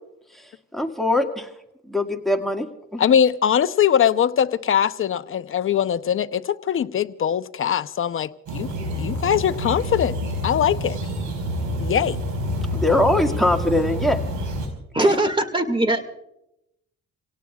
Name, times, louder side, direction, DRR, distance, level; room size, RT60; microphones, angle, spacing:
voice 1, 0.3-1.5 1.8-3.1 12.7-14.2 15.0-15.1, left 1 dB, ahead, 1.9 m, -22 dB
voice 2, 3.0-8.7 9.0-10.1 10.4-11.0 11.8-12.2, left 9 dB, 45° left, 0.7 m, -21 dB
sound 1, 8.5-14.7, equal, 85° right, 5.0 m, -28 dB
voice 3, 14.9-16.0, right 1 dB, 15° right, 2.1 m, -20 dB
29.5 x 17.5 x 2.4 m
cardioid pair, 90°, 30 cm